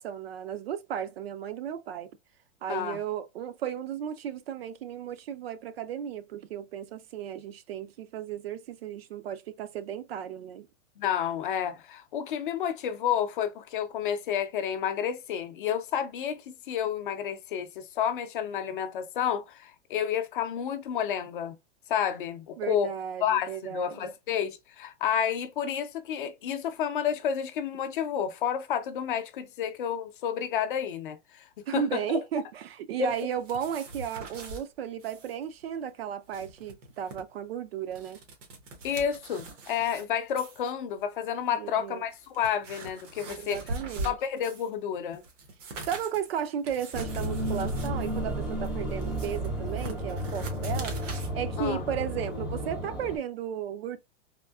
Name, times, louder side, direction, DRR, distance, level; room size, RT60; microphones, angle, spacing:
voice 1, 0.0-2.1 2.6-10.7 22.6-24.1 31.7-38.2 41.5-42.0 43.3-44.2 45.9-51.0 51.3-54.0, right 9 dB, 55° right, 0.5 m, -34 dB
voice 2, 2.7-3.0 11.0-21.6 21.9-22.9 23.2-31.5 31.7-32.0 33.0-33.1 38.8-43.6 44.0-45.2 51.6-51.8, left 9 dB, 45° left, 0.5 m, -30 dB
sound 1, 33.1-34.6 35.0-35.4 35.6-35.7 36.1-37.2 37.7-40.0 40.4-40.7 41.5-41.6 42.1-44.7 45.1-51.3, right 2 dB, 80° right, 1.3 m, -42 dB
sound 2, 46.9-53.2, equal, 5° right, 0.5 m, -32 dB
3.6 x 2.6 x 2.3 m
supercardioid pair, 170°, 36 cm